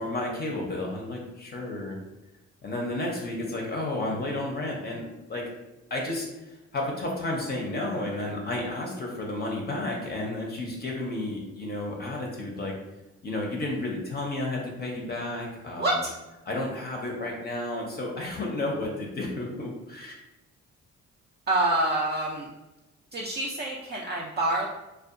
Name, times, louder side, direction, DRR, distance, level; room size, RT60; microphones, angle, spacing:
voice 1, 0.0-2.0 2.6-5.5 5.9-12.7 13.2-15.9 16.5-20.1, left 2 dB, 35° left, -1 dB, 0.5 m, -32 dB
voice 2, 15.8-16.1 21.5-22.5 23.1-24.7, right 2 dB, 35° right, -4 dB, 0.4 m, -26 dB
2.6 x 2.2 x 2.4 m, 1.0 s
cardioid pair, 90°, 30 cm